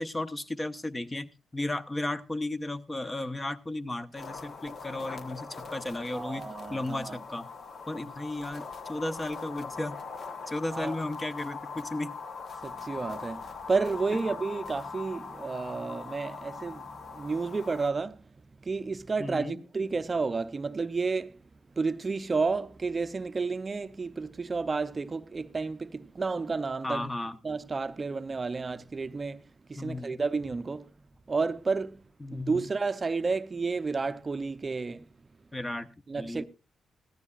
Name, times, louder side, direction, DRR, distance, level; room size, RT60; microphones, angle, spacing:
voice 1, 0.0-6.4 6.7-7.5 7.9-10.0 10.5-12.1 19.2-19.6 26.8-27.4 29.8-30.2 32.2-32.6 35.5-36.4, left 2 dB, 25° left, 0.9 m, -34 dB
sound 1, 4.2-17.9, left 4 dB, 60° left, 1.2 m, -41 dB
voice 2, 6.1-7.2 10.7-11.0 12.6-18.2 18.6-21.4 21.7-27.1 27.4-30.9 31.3-32.1 32.3-35.1 36.1-36.4, right 4 dB, 35° right, 0.5 m, -31 dB
15.5 x 14.0 x 2.4 m
cardioid pair, 60°, 0 cm